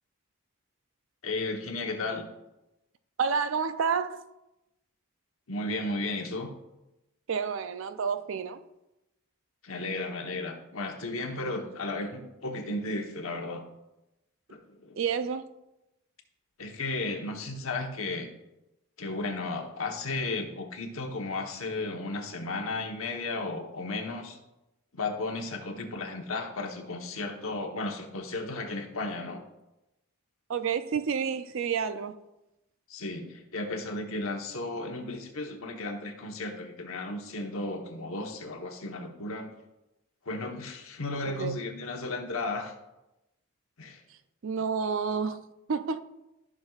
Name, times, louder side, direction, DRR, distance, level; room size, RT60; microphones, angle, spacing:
voice 1, 1.2-2.2 5.5-6.5 9.6-13.7 14.5-15.0 16.6-18.3 19.0-24.4 24.9-29.5 32.9-39.5 40.2-42.7 43.8-44.0, left 2 dB, 70° left, 1.1 m, -34 dB
voice 2, 3.2-4.2 7.3-8.6 15.0-15.5 30.5-32.2 41.3-41.6 44.4-46.0, right 6 dB, 60° right, 0.4 m, -29 dB
13.5 x 6.1 x 2.4 m
head